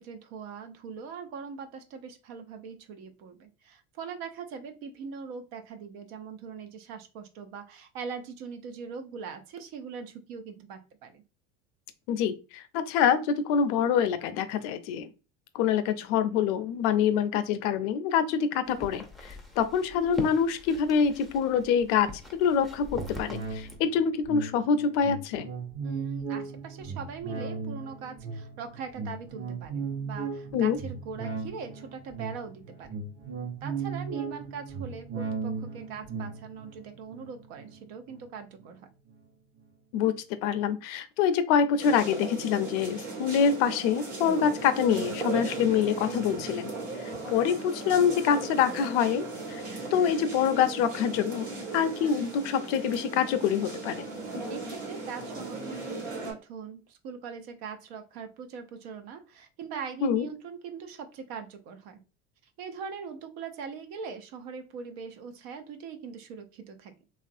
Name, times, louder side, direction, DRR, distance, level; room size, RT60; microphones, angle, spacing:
voice 1, 0.0-11.2 25.8-33.1 33.6-38.9 54.5-62.0 62.6-66.9, right 6 dB, 65° right, 8 dB, 0.7 m, -41 dB
voice 2, 12.1-15.1 15.5-22.1 22.4-25.5 30.5-30.8 39.9-40.1 40.4-46.7 47.0-49.6 49.9-51.5 51.7-54.1 60.0-60.3, left 7 dB, 70° left, 11 dB, 0.5 m, -26 dB
sound 1, 18.6-23.8, equal, ahead, 0.5 m, -42 dB
sound 2, 22.9-38.6 39.1-39.2, right 5 dB, 35° right, 0.9 m, -37 dB
sound 3, 41.8-56.3, right 2 dB, 80° right, 1.5 m, -37 dB
3.1 x 2.4 x 2.6 m, 0.31 s
supercardioid pair, 95°, 37 cm